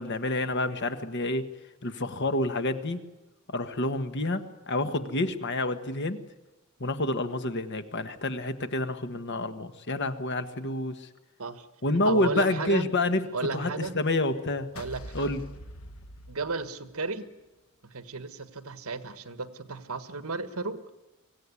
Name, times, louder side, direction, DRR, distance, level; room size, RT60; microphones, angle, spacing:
voice 1, 0.0-1.5 1.8-3.0 3.5-6.2 6.8-11.1 11.8-13.2 13.5-14.7 15.1-15.4, left 2 dB, 55° left, 9 dB, 1.5 m, -28 dB
voice 2, 12.0-12.9 13.3-13.9 14.7-15.4 16.3-17.3 17.8-20.8, right 3 dB, 75° right, 12 dB, 1.5 m, -34 dB
sound 1, 14.8-17.1, equal, 75° left, 1.4 m, -43 dB
25.0 x 16.5 x 9.8 m, 1.1 s
head